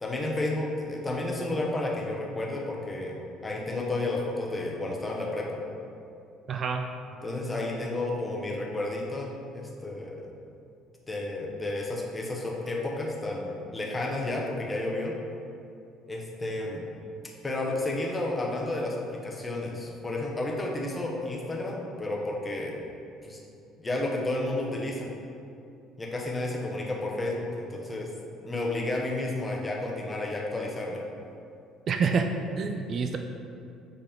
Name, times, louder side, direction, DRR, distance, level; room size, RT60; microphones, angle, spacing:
voice 1, 0.0-5.6 7.2-10.2 11.1-15.1 16.1-16.8 17.4-22.7 23.2-23.4 23.8-25.1 26.0-28.1 28.4-31.0, left 2 dB, 20° left, -2 dB, 1.2 m, -31 dB
voice 2, 6.5-6.8 31.9-32.3 32.6-33.2, right 5 dB, 45° right, 5 dB, 0.4 m, -27 dB
7.5 x 4.1 x 3.7 m, 2.6 s
figure-of-eight pair, 55°, 0 cm